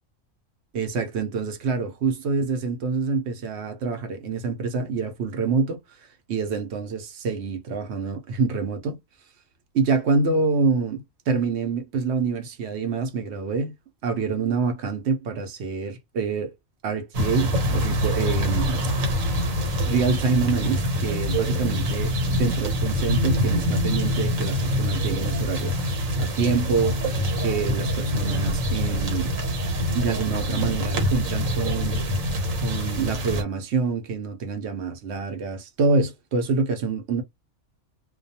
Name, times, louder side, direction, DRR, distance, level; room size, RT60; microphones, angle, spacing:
voice 1, 0.7-5.8 6.3-9.0 9.7-13.7 14.0-16.5 16.8-19.4 19.8-25.8 26.1-29.3 29.9-32.0 32.6-37.2, right 4 dB, 65° right, 0.8 m, -26 dB
sound 1, 17.1-33.4, equal, 80° right, 1.2 m, -25 dB
2.3 x 2.3 x 2.7 m
omnidirectional pair, 1.4 m